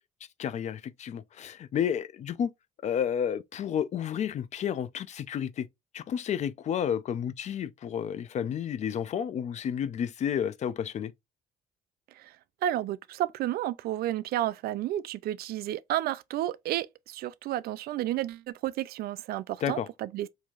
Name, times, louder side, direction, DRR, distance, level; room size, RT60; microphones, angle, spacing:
voice 1, 0.4-2.5 2.8-5.7 5.9-11.1 19.6-19.9, left 8 dB, 45° left, 0.4 m, -31 dB
voice 2, 12.6-20.3, right 13 dB, 65° right, 0.4 m, -31 dB
4.5 x 2.7 x 2.4 m
cardioid pair, 110°, 17 cm